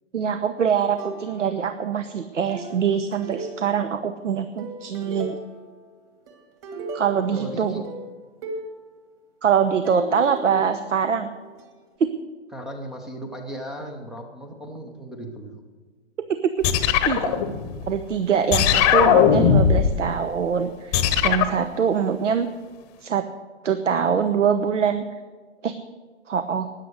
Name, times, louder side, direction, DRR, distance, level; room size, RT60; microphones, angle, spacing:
voice 1, 0.1-5.4 6.9-7.8 9.4-11.3 12.0-12.1 16.2-17.3 17.9-22.5 23.0-23.2 23.6-25.0 25.6-25.7 26.3-26.7, right 7 dB, 80° right, 10 dB, 1.0 m, -23 dB
sound 1, 1.0-1.8 2.5-4.1 4.6-5.8 6.3-8.8 9.8-11.6, right 2 dB, 30° right, 2.3 m, -37 dB
voice 2, 7.3-7.8 12.5-15.6, equal, ahead, 4 dB, 0.5 m, -36 dB
sound 2, 16.6-18.0 18.5-20.0 20.9-21.6, left 8 dB, 25° left, 0.9 m, -19 dB
13.5 x 9.9 x 6.5 m, 1.5 s
hypercardioid pair, 135°, 37 cm